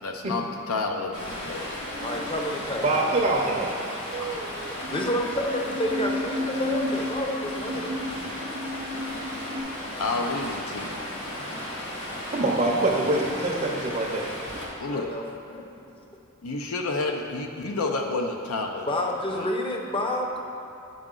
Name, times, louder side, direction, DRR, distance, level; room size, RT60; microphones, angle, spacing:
voice 1, 0.0-1.6 10.0-11.0 14.8-15.1 16.4-18.9 19.3-19.5, left 3 dB, 75° left, 3 dB, 0.6 m, -29 dB
Stream, 1.1-14.7, left 1 dB, 55° left, 1.7 m, -35 dB
sound 1, 1.8-2.3 4.1-5.1 5.5-9.6, equal, 75° right, 0.8 m, -33 dB
voice 2, 2.0-2.9 3.9-4.0 4.9-8.0 14.9-15.6 18.9-20.4, left 1 dB, 25° left, 1 dB, 0.6 m, -29 dB
voice 3, 2.8-3.7 12.3-14.3, right 2 dB, 30° right, -1 dB, 0.6 m, -24 dB
9.3 x 4.9 x 3.8 m, 2.9 s
head